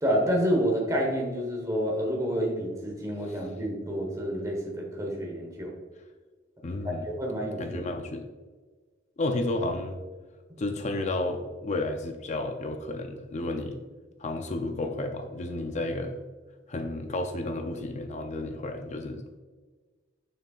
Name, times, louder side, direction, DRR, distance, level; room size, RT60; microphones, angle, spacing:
voice 1, 0.0-5.7 7.0-7.8, equal, 20° right, 0 dB, 1.2 m, -28 dB
voice 2, 6.6-7.1 7.6-8.3 9.2-10.0 10.6-13.8 14.2-16.2 16.7-19.4, left 2 dB, 40° left, 5 dB, 0.5 m, -32 dB
6.5 x 6.5 x 2.4 m, 1.4 s
head